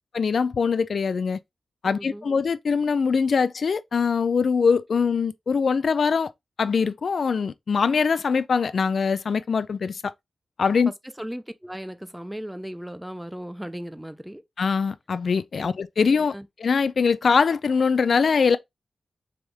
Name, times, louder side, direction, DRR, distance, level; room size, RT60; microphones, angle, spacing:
voice 1, 0.1-1.4 1.8-6.3 6.6-10.1 10.6-10.9 14.6-16.3 16.6-18.6, left 5 dB, 70° left, 0.3 m, -22 dB
voice 2, 1.8-2.3 10.9-14.4 15.6-15.7 16.0-16.5, equal, 5° right, 0.4 m, -37 dB
3.5 x 3.5 x 3.2 m
cardioid pair, 70°, 0 cm